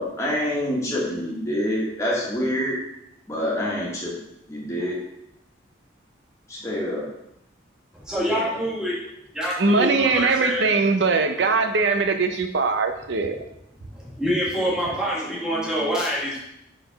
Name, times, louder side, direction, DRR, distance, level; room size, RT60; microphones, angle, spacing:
voice 1, 0.0-2.8 3.3-4.1 4.5-5.0 6.5-7.1 8.3-8.5 14.6-15.0 15.5-15.9, equal, 15° left, -4 dB, 1.5 m, -27 dB
voice 2, 8.0-8.9 9.3-10.6 13.9-16.4, equal, 5° right, -7 dB, 1.8 m, -26 dB
voice 3, 9.6-13.4, right 4 dB, 65° right, 7 dB, 0.6 m, -21 dB
5.0 x 4.0 x 5.1 m, 0.81 s
head